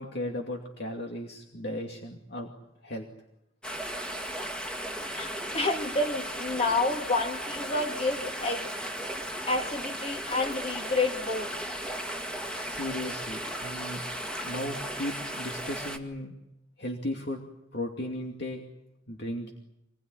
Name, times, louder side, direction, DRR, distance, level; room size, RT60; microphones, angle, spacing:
voice 1, 0.0-2.5 2.8-3.1 12.6-14.0 14.4-16.3 16.8-17.4 17.7-18.6 19.1-19.5, left 1 dB, 60° left, 1 dB, 2.6 m, -36 dB
sound 1, 3.6-16.0, equal, 5° left, 2.0 m, -36 dB
voice 2, 5.1-8.7 9.5-11.5, left 2 dB, 35° left, 4 dB, 2.6 m, -29 dB
26.0 x 21.0 x 9.7 m, 0.85 s
head